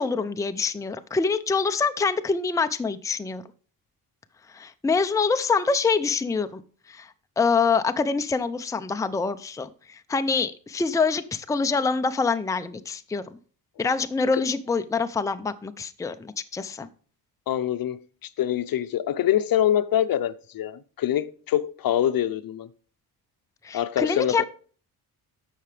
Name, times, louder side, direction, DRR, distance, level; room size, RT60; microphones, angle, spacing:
voice 1, 0.0-3.4 4.5-6.6 6.9-7.1 7.4-13.4 13.8-16.9 23.6-24.4, left 4 dB, 10° left, 0.5 m, -25 dB
voice 2, 17.5-18.0 18.4-22.7 23.7-24.4, left 11 dB, 60° left, 0.8 m, -25 dB
14.5 x 5.8 x 3.3 m
cardioid pair, 115°, 39 cm